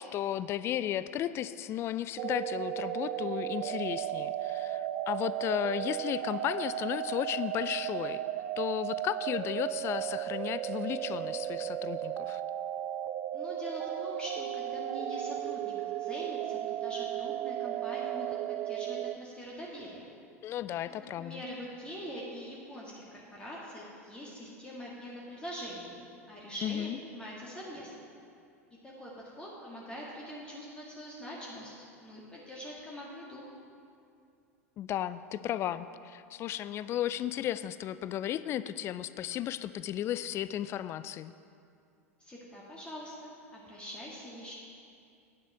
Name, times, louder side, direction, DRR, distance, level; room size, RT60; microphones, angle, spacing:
voice 1, 0.0-8.2 8.6-12.4 20.4-21.4 26.6-27.0 34.8-41.3, left 11 dB, 30° left, 14 dB, 0.3 m, -34 dB
sound 1, 2.2-19.1, right 12 dB, 40° right, 0.4 m, -35 dB
voice 2, 13.3-20.1 21.2-27.9 28.8-31.7 32.0-33.4 42.2-44.5, equal, 10° left, -5 dB, 1.7 m, -43 dB
9.6 x 7.5 x 5.8 m, 2.5 s
figure-of-eight pair, 85°, 8 cm